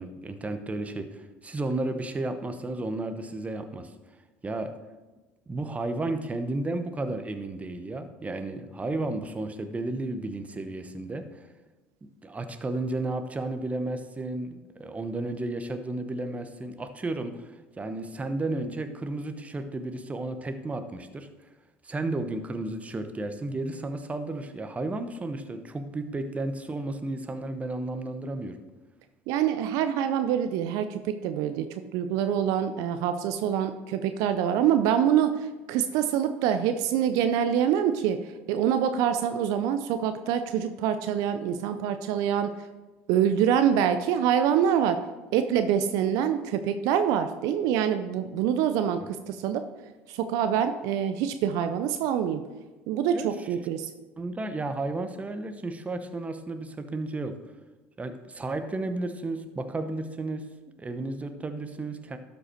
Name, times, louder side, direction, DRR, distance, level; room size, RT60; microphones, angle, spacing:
voice 1, 0.0-3.9 4.4-4.7 5.5-11.5 12.2-21.3 21.8-28.6 53.1-53.3 54.2-57.4 58.0-60.5 60.8-62.2, right 2 dB, 20° right, 8 dB, 1.0 m, -33 dB
voice 2, 29.3-42.7 43.1-45.0 45.3-49.7 50.1-52.4 52.9-53.9, right 9 dB, 65° right, 9 dB, 0.5 m, -25 dB
12.0 x 5.5 x 4.4 m, 1.2 s
hypercardioid pair, 75°, 7 cm